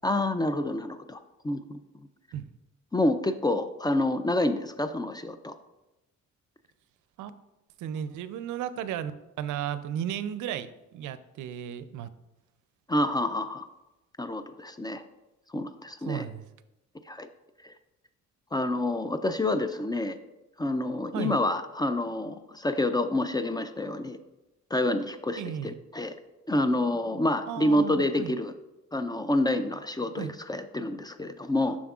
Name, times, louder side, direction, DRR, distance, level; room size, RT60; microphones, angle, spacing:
voice 1, 0.0-1.2 1.4-1.8 2.9-5.5 12.9-13.7 14.2-15.0 15.5-16.2 17.1-17.3 17.6-17.7 18.5-20.2 20.6-24.2 24.7-26.2 26.5-28.5 28.9-31.8, left 1 dB, 15° left, 10 dB, 0.3 m, -28 dB
voice 2, 7.8-9.1 9.4-12.1 16.0-16.5 21.1-21.4 25.4-25.7 27.5-28.3 30.2-30.3, right 9 dB, 80° right, 14 dB, 0.5 m, -34 dB
7.3 x 6.2 x 2.4 m, 0.97 s
cardioid pair, 90°, 30 cm